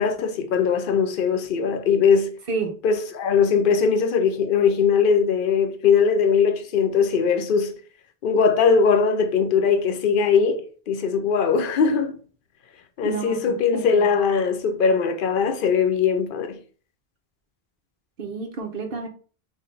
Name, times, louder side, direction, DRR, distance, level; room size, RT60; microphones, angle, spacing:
voice 1, 0.0-2.3 2.8-7.7 8.2-12.2 13.0-16.6, left 6 dB, 60° left, 0.7 m, -20 dB
voice 2, 13.0-13.4 13.7-14.2 18.2-19.1, right 5 dB, 65° right, 1.0 m, -30 dB
4.5 x 2.2 x 3.1 m
omnidirectional pair, 1.0 m